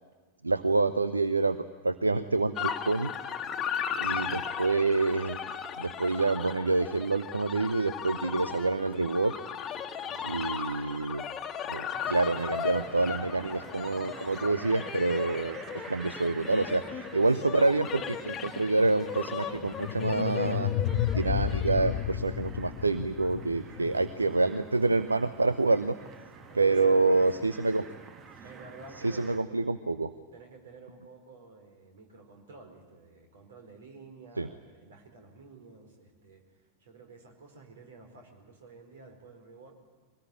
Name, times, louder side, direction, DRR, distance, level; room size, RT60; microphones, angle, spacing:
voice 1, 0.4-3.1 4.0-5.4 5.8-9.4 10.2-11.2 11.7-20.7 21.1-26.0 26.5-27.8 29.0-30.1 34.4-34.5, right 3 dB, 80° right, 12 dB, 0.7 m, -27 dB
sound 1, 2.6-22.0, left 7 dB, 25° left, 1.5 m, -37 dB
voice 2, 3.9-4.4 10.0-10.4 14.1-14.3 16.9-17.0 23.8-24.6 26.4-27.5 28.4-29.6 30.3-39.7, right 3 dB, 60° right, 4 dB, 4.5 m, -51 dB
sound 2, 11.9-29.4, right 5 dB, 30° right, 1.5 m, -48 dB
sound 3, 19.5-24.6, left 11 dB, 45° left, 0.7 m, -32 dB
23.5 x 18.5 x 9.8 m, 1.4 s
figure-of-eight pair, 90°, 0 cm